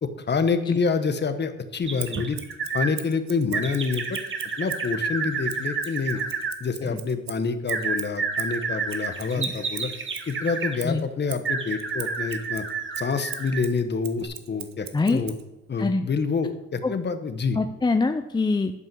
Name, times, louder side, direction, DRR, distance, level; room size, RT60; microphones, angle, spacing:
voice 1, 0.0-2.4 2.7-4.2 4.6-6.2 6.6-9.9 10.3-12.6 13.0-15.3 15.7-17.6, left 5 dB, 35° left, 9 dB, 1.1 m, -27 dB
sound 1, 1.8-2.9 3.5-6.5 7.7-10.8 11.4-13.7 14.2-14.3, right 5 dB, 40° right, 1.3 m, -30 dB
Scissors, 2.0-4.9 5.5-10.3 10.8-15.4, right 10 dB, 65° right, 1.0 m, -41 dB
voice 2, 17.5-18.7, left 3 dB, 15° left, 7 dB, 0.5 m, -24 dB
11.0 x 5.4 x 6.9 m, 0.98 s
cardioid pair, 90°, 30 cm